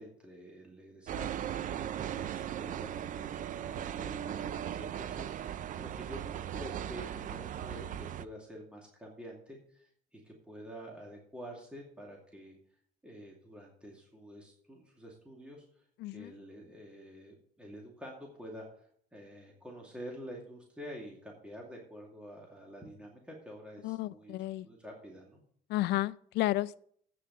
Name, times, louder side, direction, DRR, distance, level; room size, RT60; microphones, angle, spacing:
voice 1, 0.0-12.6 13.0-15.9 16.1-25.4, equal, 5° right, 2.4 m, -48 dB
sound 1, 1.1-8.3, right 10 dB, 50° right, 0.5 m, -38 dB
voice 2, 16.0-16.3 23.8-24.7 25.7-26.7, left 16 dB, 80° left, 0.5 m, -32 dB
8.7 x 6.6 x 8.1 m
cardioid pair, 110°, 17 cm